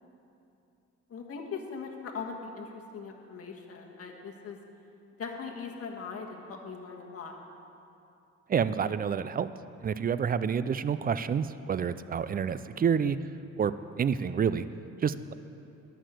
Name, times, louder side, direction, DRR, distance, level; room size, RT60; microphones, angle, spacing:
voice 1, 1.1-4.6 5.2-7.3, left 5 dB, 50° left, 1 dB, 1.5 m, -40 dB
voice 2, 8.5-9.5 9.8-13.2 13.6-14.7 15.0-15.3, right 7 dB, 30° right, 14 dB, 0.4 m, -28 dB
11.5 x 6.6 x 7.6 m, 2.7 s
cardioid pair, 90°, 30 cm